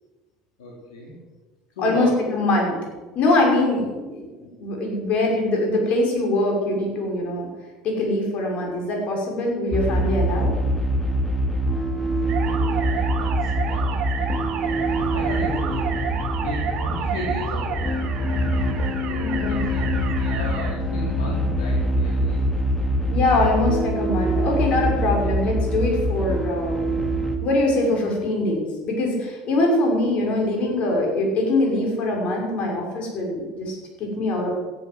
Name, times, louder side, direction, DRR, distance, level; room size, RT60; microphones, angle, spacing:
voice 1, 0.6-1.2 1.8-2.2 12.4-13.9 14.3-15.9 16.4-18.1 19.0-22.4, left 2 dB, 85° left, -3 dB, 3.7 m, -35 dB
voice 2, 1.8-2.8 3.2-7.5 7.8-10.6 19.2-19.7 23.1-26.8 27.4-34.5, left 2 dB, 55° left, 0 dB, 5.8 m, -23 dB
sound 1, 9.7-27.4, right 1 dB, 10° left, 2.9 m, -24 dB
sound 2, 12.3-20.7, right 7 dB, 55° right, 2.8 m, -31 dB
14.0 x 9.0 x 7.7 m, 1.3 s
hypercardioid pair, 75°, 3 cm